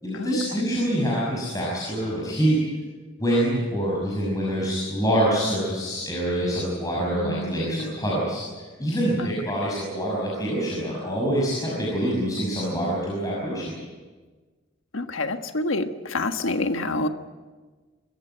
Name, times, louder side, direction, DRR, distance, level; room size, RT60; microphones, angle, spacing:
voice 1, 0.0-2.6 3.2-8.4 8.8-13.7, equal, 20° left, -5 dB, 6.2 m, -25 dB
voice 2, 7.1-7.9 9.2-9.3 14.9-17.1, left 2 dB, 90° left, 7 dB, 1.5 m, -28 dB
26.0 x 15.0 x 9.3 m, 1.4 s
head